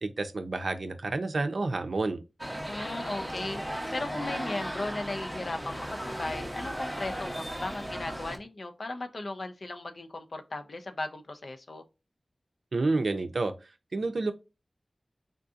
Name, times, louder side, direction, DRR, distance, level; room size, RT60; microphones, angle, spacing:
voice 1, 0.0-2.2 12.7-13.5 13.9-14.3, right 3 dB, 75° right, 0.5 m, -29 dB
sound 1, 2.4-8.4, equal, 5° right, 0.6 m, -36 dB
voice 2, 2.7-11.8, left 2 dB, 65° left, 0.5 m, -37 dB
3.6 x 2.6 x 2.4 m
wide cardioid pair, 75°, 0 cm